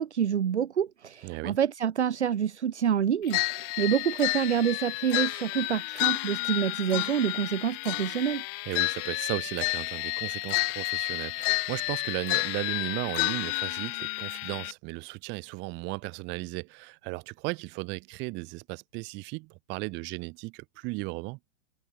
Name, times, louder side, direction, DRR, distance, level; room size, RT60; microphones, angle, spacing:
voice 1, 0.0-8.4, right 8 dB, 70° right, 0.7 m, -27 dB
voice 2, 1.2-1.6 8.7-21.4, right 25 dB, 30° right, 5.8 m, -36 dB
old toy piano, 3.3-14.7, left 39 dB, 30° left, 2.4 m, -31 dB
figure-of-eight pair, 110°, 35 cm